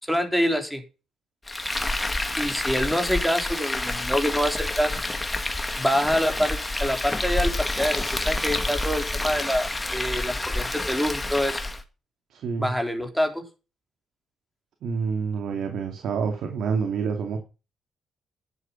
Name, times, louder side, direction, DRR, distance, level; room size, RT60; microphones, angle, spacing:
voice 1, 0.0-0.8 2.4-5.0 5.8-11.6 12.6-13.4, equal, ahead, 6 dB, 3.6 m, -26 dB
Frying (food), 1.5-11.8, left 2 dB, 15° left, 1.9 m, -28 dB
voice 2, 12.3-12.7 14.8-17.4, right 5 dB, 70° right, 5 dB, 2.4 m, -28 dB
11.0 x 7.9 x 5.8 m, 0.30 s
cardioid pair, 90°, 0 cm